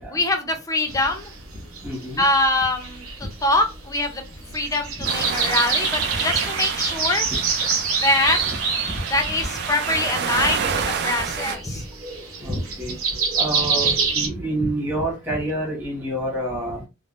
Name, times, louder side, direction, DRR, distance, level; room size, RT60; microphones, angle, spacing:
voice 1, 0.1-1.3 2.2-3.0 3.4-4.2 4.5-7.3 8.0-8.4 9.1-11.9, left 2 dB, 15° left, 5 dB, 0.5 m, -23 dB
sound 1, 0.9-14.3, right 5 dB, 75° right, 0.8 m, -27 dB
voice 2, 1.8-2.2 6.1-6.3 8.4-8.6 8.9-9.0 9.3-9.4 12.4-13.0 13.4-16.8, right 1 dB, 10° right, -3 dB, 1.1 m, -28 dB
sound 2, 5.0-11.6, right 7 dB, 50° right, 0.4 m, -29 dB
3.5 x 2.0 x 2.4 m, 0.25 s
head